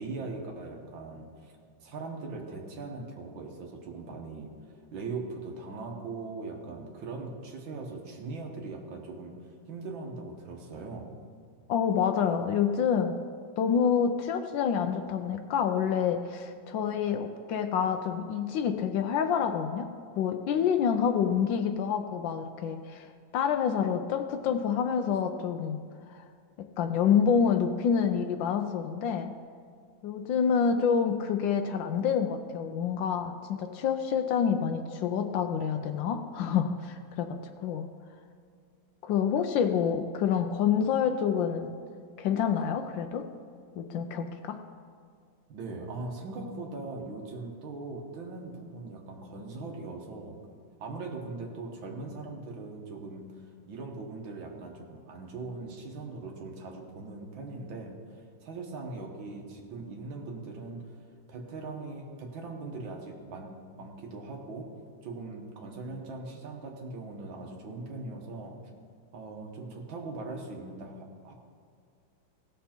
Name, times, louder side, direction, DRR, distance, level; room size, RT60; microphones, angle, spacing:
voice 1, 0.0-1.5 1.8-11.1 45.5-50.4 50.8-61.0 61.3-64.7 65.0-68.6 69.1-71.3, right 3 dB, 85° right, 1 dB, 2.0 m, -40 dB
voice 2, 11.7-13.2 13.6-19.9 20.2-23.1 23.3-25.8 26.1-26.2 26.6-29.3 30.0-37.9 39.0-41.8 42.2-43.3 43.8-44.6, left 7 dB, 80° left, 6 dB, 1.3 m, -27 dB
16.5 x 6.9 x 4.4 m, 2.2 s
omnidirectional pair, 2.1 m